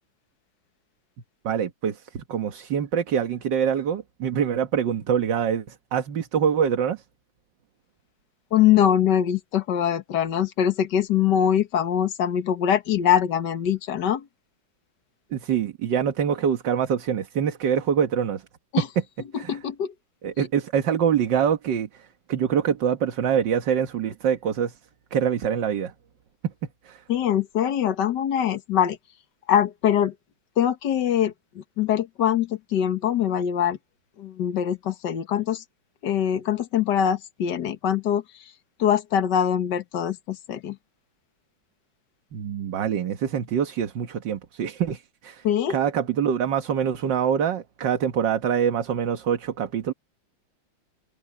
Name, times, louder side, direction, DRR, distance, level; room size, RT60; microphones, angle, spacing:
voice 1, 1.4-7.0 15.3-18.4 19.4-19.6 20.2-24.7 25.1-25.9 26.9-27.0 42.3-45.4 45.7-49.9, right 8 dB, 65° right, 2.0 m, -25 dB
voice 2, 8.5-14.3 18.7-18.9 19.3-19.9 27.1-29.0 29.5-30.1 30.6-33.8 34.2-35.6 36.0-38.2 38.8-40.8 45.4-45.8, left 9 dB, 60° left, 1.9 m, -23 dB
omnidirectional pair, 2.2 m